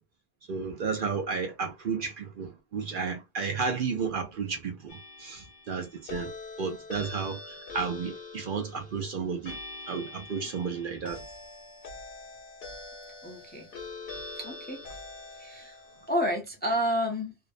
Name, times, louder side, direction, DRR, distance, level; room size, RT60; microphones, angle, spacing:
voice 1, 0.5-6.3 6.6-9.6 9.9-11.2, right 5 dB, 60° right, 0.7 m, -32 dB
sound 1, 4.9-16.1, left 3 dB, 60° left, 1.0 m, -44 dB
voice 2, 13.2-13.7 14.4-14.9 15.4-15.8 16.1-17.4, equal, 10° left, 0.6 m, -30 dB
2.6 x 2.0 x 2.5 m
omnidirectional pair, 1.1 m